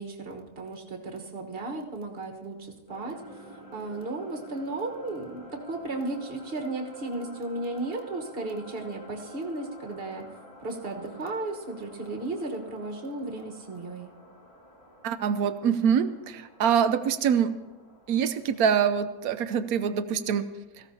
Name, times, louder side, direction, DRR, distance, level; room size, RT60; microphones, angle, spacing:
voice 1, 0.0-3.2 3.5-10.3 10.6-14.1, right 2 dB, 40° right, 2 dB, 1.4 m, -35 dB
sound 1, 2.9-19.7, equal, 30° left, 2.3 m, -49 dB
voice 2, 15.0-17.5 18.1-20.5, right 7 dB, 70° right, 11 dB, 1.0 m, -25 dB
17.5 x 15.0 x 2.8 m, 1.1 s
omnidirectional pair, 1.7 m